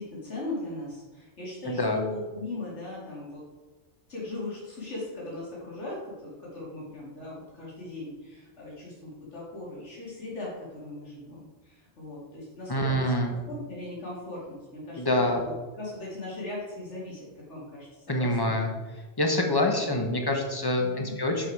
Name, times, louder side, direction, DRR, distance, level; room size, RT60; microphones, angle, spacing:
voice 1, 0.0-3.4 4.1-18.5 20.8-21.1, left 2 dB, 90° left, -6 dB, 2.7 m, -39 dB
voice 2, 1.6-2.0 12.7-13.3 15.0-15.5 18.1-18.7 19.2-21.5, left 1 dB, 20° left, 2 dB, 1.1 m, -26 dB
7.6 x 5.9 x 4.8 m, 1.2 s
omnidirectional pair, 1.2 m